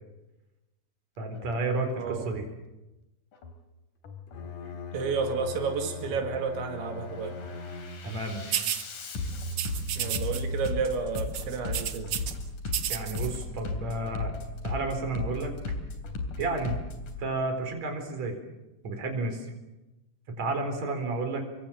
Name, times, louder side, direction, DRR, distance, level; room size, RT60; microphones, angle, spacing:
voice 1, 1.2-2.5 8.0-8.6 12.9-14.3 14.6-15.5 16.4-16.8 17.2-18.4 18.8-19.5 20.3-21.4, right 2 dB, 40° right, 5 dB, 5.1 m, -31 dB
Bass drum, 1.3-1.6 2.0-2.5 3.3-3.6 4.0-4.5 5.3-5.6 6.0-6.5 7.0-17.2, left 2 dB, 50° left, 4.4 m, -36 dB
Bowed string instrument, 4.3-8.4, left 4 dB, 85° left, 5.8 m, -40 dB
voice 2, 4.9-7.4 10.0-12.1, right 5 dB, 90° right, 4 dB, 4.7 m, -31 dB
sound 1, 8.5-8.9 9.5-10.4 10.7-10.9 11.2-12.3 12.7-13.3, right 10 dB, 60° right, 2.5 m, -31 dB
28.0 x 24.0 x 7.5 m, 1.0 s
omnidirectional pair, 5.1 m